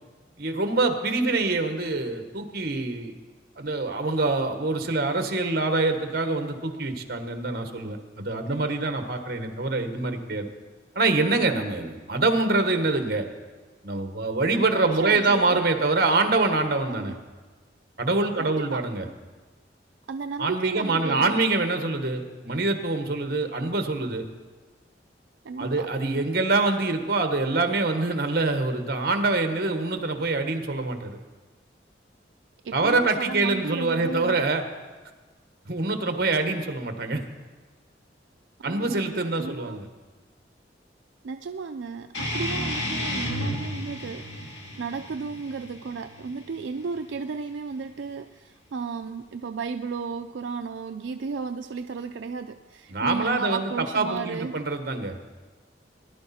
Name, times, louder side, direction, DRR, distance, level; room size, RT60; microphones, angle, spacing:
voice 1, 0.4-3.2 3.6-10.5 10.9-13.2 13.8-17.1 18.0-19.0 20.4-24.3 25.6-31.2 32.7-34.6 35.6-37.2 38.6-39.9 52.9-55.1, right 3 dB, 55° right, 6 dB, 1.3 m, -25 dB
voice 2, 8.5-8.9 15.0-15.6 16.9-17.2 18.4-18.8 20.1-21.4 25.4-25.9 32.6-34.5 38.6-39.8 41.2-54.6, right 5 dB, 85° right, 7 dB, 0.4 m, -34 dB
sound 1, 42.1-47.2, left 1 dB, 75° left, 2.2 m, -32 dB
19.5 x 11.0 x 4.3 m, 1.3 s
head